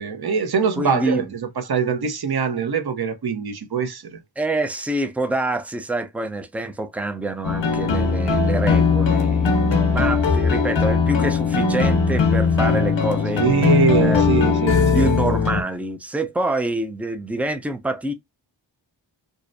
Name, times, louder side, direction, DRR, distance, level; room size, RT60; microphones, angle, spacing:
voice 1, 0.0-4.2 7.9-8.0 13.3-15.2, right 6 dB, 55° right, 0.7 m, -23 dB
voice 2, 0.8-1.3 4.4-13.5 14.0-14.2 14.9-18.1, right 2 dB, 5° right, 0.3 m, -26 dB
sound 1, 7.4-15.6, left 5 dB, 65° left, 0.7 m, -19 dB
2.5 x 2.1 x 2.5 m
wide cardioid pair, 45°, 47 cm